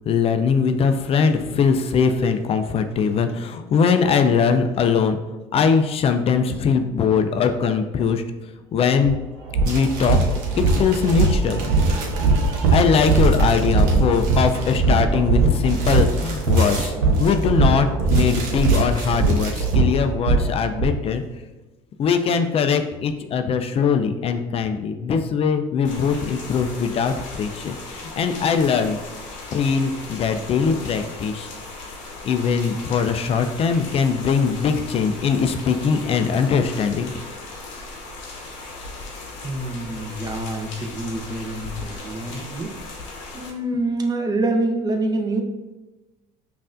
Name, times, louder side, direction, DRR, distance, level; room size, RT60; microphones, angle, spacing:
voice 1, 0.1-5.2 5.5-8.2 8.7-9.2 9.7-10.2 10.6-11.6 12.7-21.2 22.0-27.8 28.2-29.0 29.5-31.5 32.2-37.1, left 6 dB, 40° left, 8 dB, 0.4 m, -21 dB
sound 1, 9.0-9.1 9.5-20.9, right 3 dB, 85° right, 0.6 m, -20 dB
sound 2, 9.7-14.9 15.3-17.7 18.0-19.8, right 3 dB, 65° right, 0.9 m, -37 dB
sound 3, 25.8-43.5, left 3 dB, 90° left, 0.8 m, -37 dB
voice 2, 39.4-42.7 43.3-45.4, right 2 dB, 25° right, 4 dB, 0.6 m, -26 dB
5.3 x 2.5 x 2.5 m, 1.1 s
supercardioid pair, 85°, 16 cm